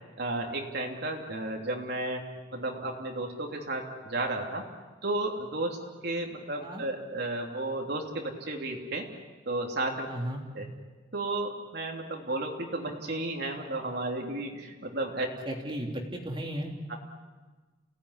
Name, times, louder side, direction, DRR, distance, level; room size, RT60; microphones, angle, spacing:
voice 1, 0.2-2.2 2.5-4.6 5.0-5.8 6.0-9.1 9.4-10.1 10.5-10.7 11.1-15.3 16.9-17.0, right 2 dB, 65° right, 1 dB, 3.1 m, -33 dB
voice 2, 10.1-10.4 15.5-16.7, right 1 dB, 30° right, 1 dB, 3.2 m, -35 dB
29.5 x 17.5 x 10.0 m, 1.3 s
head